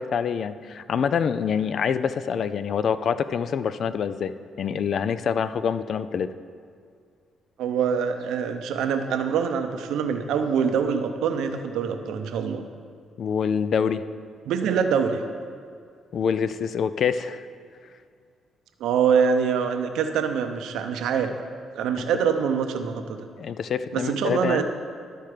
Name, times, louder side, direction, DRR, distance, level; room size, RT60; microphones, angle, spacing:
voice 1, 0.0-4.3 4.6-6.3 13.2-14.0 16.1-17.4 22.0-22.1 23.4-24.6, left 7 dB, 60° left, 13 dB, 0.3 m, -26 dB
voice 2, 7.6-12.6 14.5-15.2 18.8-21.3 21.7-23.0 23.9-24.6, right 7 dB, 85° right, 6 dB, 0.6 m, -24 dB
12.5 x 4.5 x 4.9 m, 2.2 s
cardioid pair, 90°, 0 cm